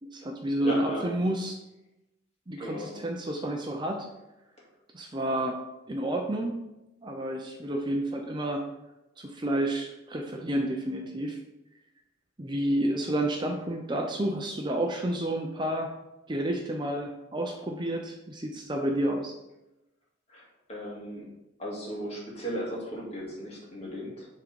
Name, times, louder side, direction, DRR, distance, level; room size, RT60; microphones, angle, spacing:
voice 1, 0.0-1.5 2.5-4.1 4.9-5.6 5.9-6.5 7.0-8.6 9.2-11.4 12.4-15.9 16.3-19.3, right 1 dB, 25° right, 2 dB, 0.5 m, -30 dB
voice 2, 0.6-1.0 2.6-2.9 20.3-21.3 21.6-24.3, equal, 30° left, -4 dB, 2.1 m, -36 dB
7.5 x 3.8 x 5.2 m, 0.95 s
head